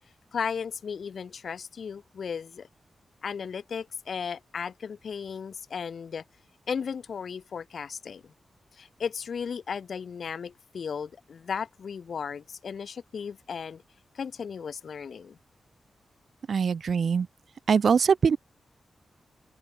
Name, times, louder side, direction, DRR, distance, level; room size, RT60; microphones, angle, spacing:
voice 1, 0.3-2.7 3.2-6.2 6.7-8.3 8.7-13.8 14.1-15.4, left 6 dB, 70° left, 0.7 m, -35 dB
voice 2, 16.5-17.3 17.7-18.4, right 6 dB, 65° right, 0.5 m, -22 dB
cardioid pair, 85°, 0 cm